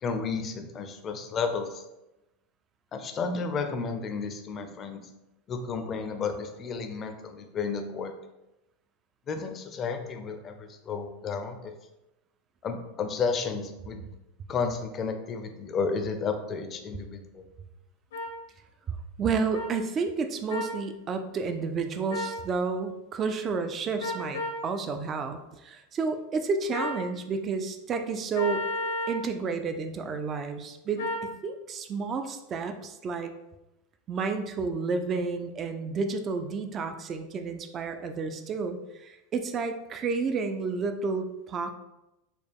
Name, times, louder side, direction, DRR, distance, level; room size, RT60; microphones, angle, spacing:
voice 1, 0.0-1.8 2.9-5.1 5.5-8.1 9.3-11.7 12.6-14.1 14.5-17.4, left 5 dB, 30° left, 6 dB, 0.5 m, -32 dB
sound 1, 18.1-18.3 19.5-19.7 20.5-20.7 22.1-22.4 24.0-24.6 26.7-27.0 28.3-29.2 31.0-31.3, left 1 dB, 85° left, 0.9 m, -32 dB
voice 2, 18.9-28.6 29.1-33.3 34.1-41.7, right 4 dB, 30° right, 7 dB, 0.4 m, -31 dB
4.2 x 2.3 x 3.4 m, 0.95 s
supercardioid pair, 135°, 0 cm